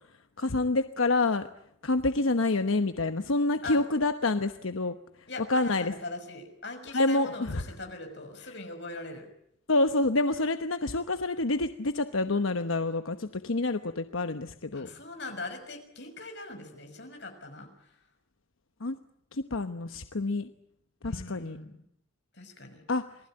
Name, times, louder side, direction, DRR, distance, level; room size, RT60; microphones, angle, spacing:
voice 1, 0.4-1.5 1.8-4.9 5.5-6.0 6.9-7.6 9.7-14.9 18.8-19.0 19.3-20.5 21.0-21.6 22.9-23.0, left 2 dB, 90° left, 9 dB, 1.1 m, -27 dB
voice 2, 5.3-9.3 14.7-17.9 21.1-21.8 22.3-22.8, left 2 dB, 60° left, 5 dB, 6.1 m, -41 dB
27.5 x 19.5 x 8.8 m, 0.74 s
head